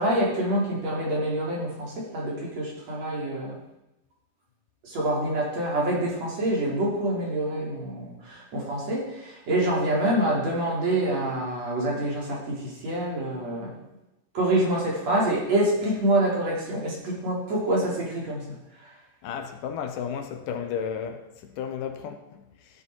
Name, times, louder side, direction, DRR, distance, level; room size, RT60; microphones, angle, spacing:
voice 1, 0.0-3.6 4.8-13.7 14.3-18.6, right 1 dB, 50° right, 4.7 m, -26 dB
voice 2, 19.2-22.4, left 7 dB, 75° left, 2.6 m, -33 dB
16.0 x 10.0 x 4.7 m
omnidirectional pair, 3.9 m